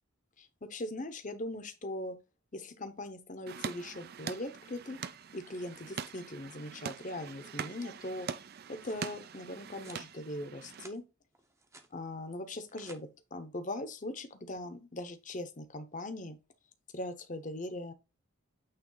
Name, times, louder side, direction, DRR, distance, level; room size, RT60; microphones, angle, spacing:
voice 1, 0.4-2.2 2.5-5.0 5.3-8.3 8.7-11.0 11.9-16.4 16.9-17.9, left 1 dB, 35° left, 0.8 m, -40 dB
sound 1, 3.5-10.9, right 6 dB, 45° right, 0.4 m, -43 dB
sound 2, 8.8-9.1 9.7-10.1 10.5-11.0 11.3-11.9 12.5-13.0, right 3 dB, 15° right, 0.7 m, -56 dB
8.9 x 3.2 x 3.9 m
head